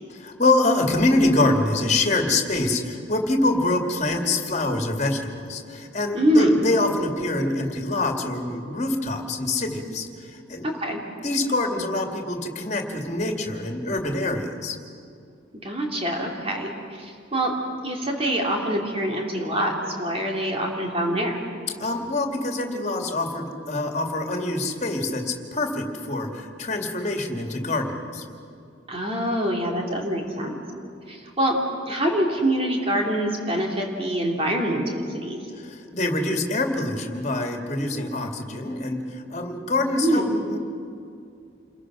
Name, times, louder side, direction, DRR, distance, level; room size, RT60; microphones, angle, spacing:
voice 1, 0.1-10.7 11.2-14.8 21.8-28.2 35.6-40.6, left 2 dB, 35° left, 3 dB, 2.4 m, -25 dB
voice 2, 6.1-6.6 10.6-11.0 15.6-17.5 17.8-21.4 28.9-30.6 31.1-31.6 31.9-35.4 40.0-40.3, right 1 dB, 30° right, 0 dB, 2.9 m, -24 dB
28.5 x 22.0 x 6.3 m, 2.5 s
head